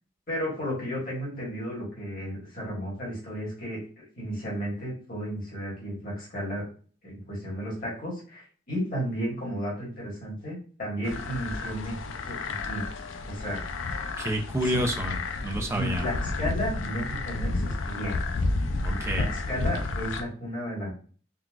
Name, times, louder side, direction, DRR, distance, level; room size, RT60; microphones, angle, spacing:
voice 1, 0.3-6.6 7.0-12.8 13.2-13.6 14.6-14.9 15.7-18.3 19.1-20.9, equal, 40° left, -5 dB, 1.5 m, -33 dB
sound 1, 11.0-20.2, left 3 dB, 70° left, 0.4 m, -31 dB
voice 2, 14.2-16.0 18.8-19.2, equal, 15° right, 4 dB, 0.3 m, -29 dB
3.9 x 2.3 x 2.3 m, 0.42 s
head